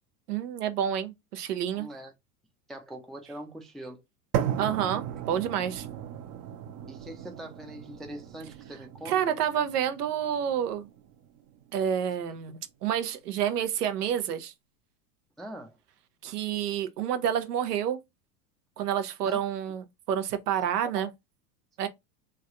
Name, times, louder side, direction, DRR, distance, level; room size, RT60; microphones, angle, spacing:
voice 1, 0.3-1.9 4.6-5.9 9.1-10.9 11.7-14.5 16.2-18.0 18.8-21.1 21.8-21.9, right 9 dB, 90° right, 0.8 m, -29 dB
voice 2, 1.7-2.1 2.7-4.0 6.9-9.3 15.4-15.7 19.3-19.4 20.8-21.1, right 1 dB, ahead, 0.4 m, -42 dB
sound 1, 4.3-12.4, right 10 dB, 50° right, 0.7 m, -36 dB
3.3 x 2.2 x 3.6 m
hypercardioid pair, 105°, 46 cm